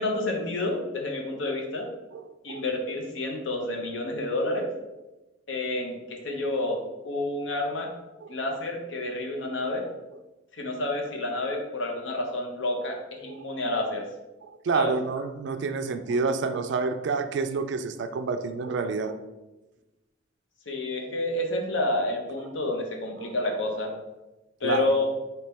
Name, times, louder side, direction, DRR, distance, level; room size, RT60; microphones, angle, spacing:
voice 1, 0.0-1.9 2.4-4.7 5.5-7.9 8.3-9.9 10.5-14.0 14.7-14.9 20.7-23.9 24.6-25.1, left 2 dB, 65° left, 2 dB, 0.7 m, -29 dB
voice 2, 14.6-19.2 23.2-23.3 24.6-24.9, right 4 dB, 60° right, 9 dB, 0.3 m, -28 dB
4.2 x 2.8 x 3.5 m, 1.0 s
head